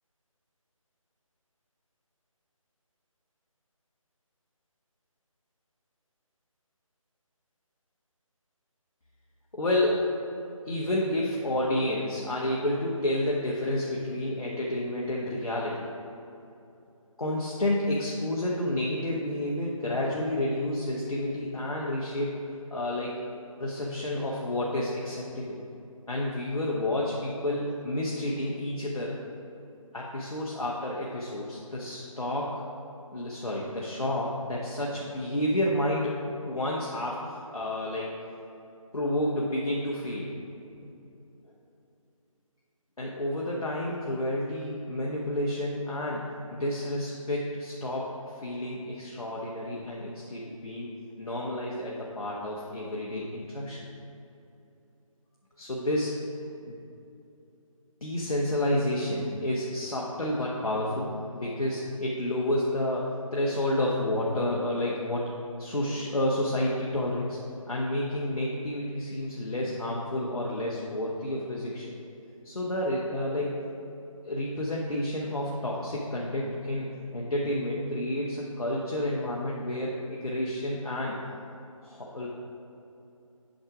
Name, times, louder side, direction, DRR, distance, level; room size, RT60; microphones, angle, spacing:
voice 1, 9.5-10.1 10.7-15.9 17.2-22.4 22.7-23.2 23.6-25.6 26.1-29.2 29.9-32.6 33.1-36.2 36.5-38.1 38.9-40.3 41.4-41.5 43.0-48.1 48.4-50.9 51.2-53.8 55.6-56.2 56.6-56.7 58.0-65.3 65.6-67.4 67.7-72.0 72.4-73.6 74.2-81.2 81.8-82.3, left 1 dB, 85° left, -4 dB, 1.2 m, -30 dB
7.8 x 5.1 x 4.8 m, 2.7 s
figure-of-eight pair, 160°, 18 cm